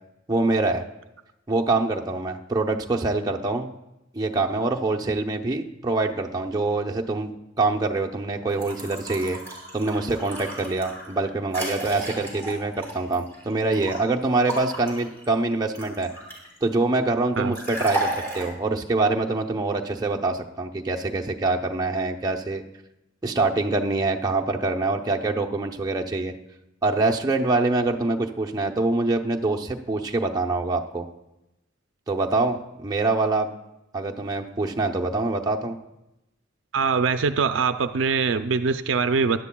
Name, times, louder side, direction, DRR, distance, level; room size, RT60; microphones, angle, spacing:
voice 1, 0.3-0.8 1.5-3.7 4.1-7.3 7.6-9.4 9.7-16.1 16.6-22.6 23.2-26.3 26.8-31.1 32.1-33.5 33.9-35.8, right 3 dB, 20° right, 1 dB, 0.7 m, -25 dB
sound 1, 8.5-14.0 14.5-16.6 17.5-18.5, right 1 dB, 10° left, 3.1 m, -34 dB
voice 2, 36.7-39.4, right 5 dB, 70° right, 10 dB, 0.5 m, -23 dB
15.5 x 10.5 x 2.3 m, 0.92 s
head